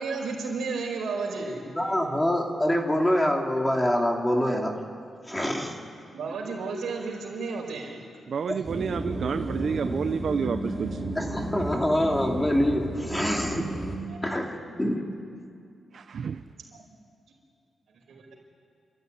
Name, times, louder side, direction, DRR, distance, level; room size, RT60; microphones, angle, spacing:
voice 1, 0.0-2.1 6.1-8.0 10.4-10.5 11.5-11.7 14.1-14.4 18.1-18.3, right 4 dB, 80° right, 0 dB, 5.2 m, -33 dB
voice 2, 1.8-4.8 5.3-5.7 8.5-8.9 11.1-13.6 14.2-15.0, left 1 dB, 10° left, 1 dB, 2.6 m, -25 dB
voice 3, 8.3-10.9 15.9-16.4, right 6 dB, 60° right, 10 dB, 0.5 m, -29 dB
sound 1, 8.6-14.0, right 1 dB, 15° right, 4.0 m, -33 dB
29.0 x 13.5 x 9.8 m, 2.3 s
cardioid pair, 115°, 0 cm